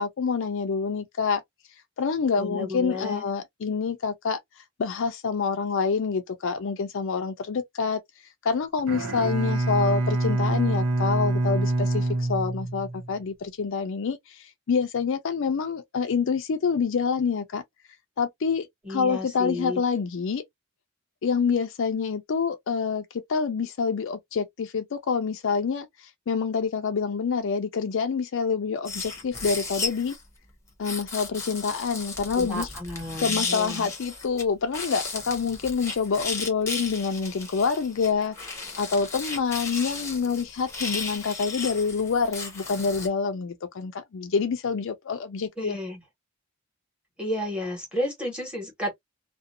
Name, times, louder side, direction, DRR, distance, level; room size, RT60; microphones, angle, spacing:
voice 1, 0.0-1.4 2.0-4.4 4.8-8.0 8.4-17.6 18.2-20.4 21.2-23.0 23.3-25.9 26.3-30.1 30.8-32.7 33.2-45.8, left 5 dB, 60° left, 0.4 m, -27 dB
voice 2, 2.4-3.2 18.8-19.8 32.3-33.9 45.6-46.0 47.2-48.9, left 1 dB, 5° right, 1.1 m, -32 dB
Bowed string instrument, 8.8-13.1, right 2 dB, 80° right, 0.7 m, -25 dB
sound 1, 28.8-30.2 30.8-34.4 34.7-43.1, left 3 dB, 15° left, 0.8 m, -34 dB
2.5 x 2.0 x 2.6 m
head